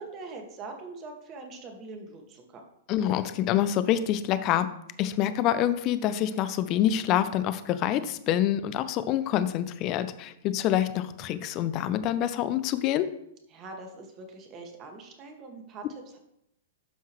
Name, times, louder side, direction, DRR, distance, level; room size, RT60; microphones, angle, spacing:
voice 1, 0.0-2.6 13.5-16.2, right 3 dB, 30° right, 3 dB, 1.9 m, -43 dB
voice 2, 2.9-4.7 5.0-13.1, left 11 dB, 40° left, 12 dB, 0.7 m, -26 dB
12.0 x 5.6 x 3.2 m, 0.78 s
hypercardioid pair, 110°, 0 cm